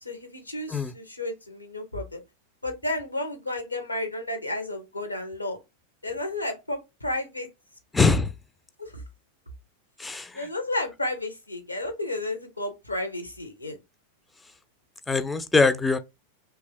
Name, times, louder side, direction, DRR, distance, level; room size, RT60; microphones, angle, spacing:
voice 1, 0.0-2.2 2.6-5.6 6.0-7.5 8.8-9.0 10.3-13.8, left 1 dB, 85° left, 0.7 m, -32 dB
voice 2, 7.9-8.3 10.0-10.5 15.1-16.0, left 4 dB, 10° left, 0.3 m, -22 dB
2.9 x 2.3 x 3.4 m
figure-of-eight pair, 90°, 0 cm